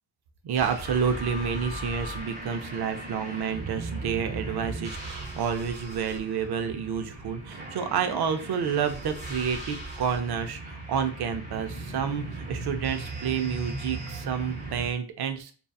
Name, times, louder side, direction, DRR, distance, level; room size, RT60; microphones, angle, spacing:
voice 1, 0.4-15.5, right 7 dB, 50° right, 7 dB, 0.5 m, -29 dB
sound 1, 0.5-14.9, right 2 dB, 15° right, 0.7 m, -38 dB
2.7 x 2.3 x 2.3 m, 0.40 s
cardioid pair, 95°, 50 cm